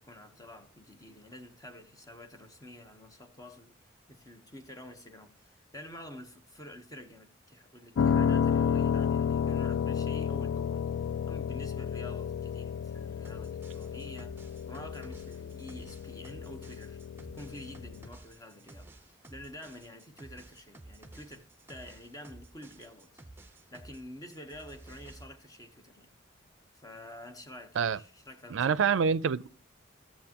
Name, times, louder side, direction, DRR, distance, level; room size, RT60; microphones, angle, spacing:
voice 1, 0.0-3.8 4.1-10.8 11.3-14.4 14.7-18.9 19.3-23.1 23.4-26.1 26.7-28.8, left 1 dB, 20° left, 1.0 m, -48 dB
Piano, 8.0-18.1, left 7 dB, 80° left, 0.3 m, -31 dB
sound 1, 13.2-24.0 24.3-25.2, right 2 dB, 10° right, 0.7 m, -52 dB
voice 2, 28.5-29.5, right 6 dB, 80° right, 0.4 m, -26 dB
13.0 x 7.3 x 2.9 m
head